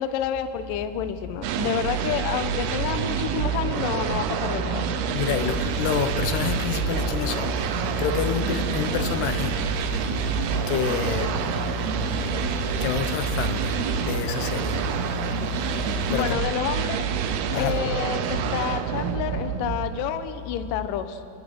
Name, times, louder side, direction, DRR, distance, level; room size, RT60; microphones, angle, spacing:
voice 1, 0.0-4.9 16.1-17.0 17.6-21.2, left 9 dB, 70° left, 2.3 m, -29 dB
sound 1, 1.4-20.4, right 8 dB, 80° right, 2.9 m, -27 dB
voice 2, 5.1-16.4 17.3-17.8, left 7 dB, 85° left, 3.1 m, -29 dB
29.5 x 20.0 x 6.3 m
omnidirectional pair, 4.6 m